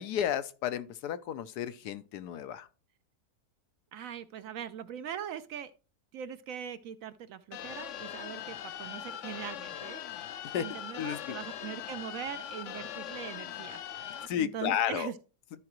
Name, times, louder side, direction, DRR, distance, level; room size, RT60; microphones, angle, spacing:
voice 1, 0.0-2.7 10.5-10.6 11.0-11.4 14.3-15.1, left 10 dB, 85° left, 1.2 m, -32 dB
voice 2, 3.9-5.7 6.1-10.1 10.6-15.2, right 9 dB, 70° right, 0.9 m, -41 dB
sound 1, 7.5-14.3, left 10 dB, 65° left, 0.8 m, -41 dB
13.0 x 4.8 x 3.0 m
omnidirectional pair, 1.7 m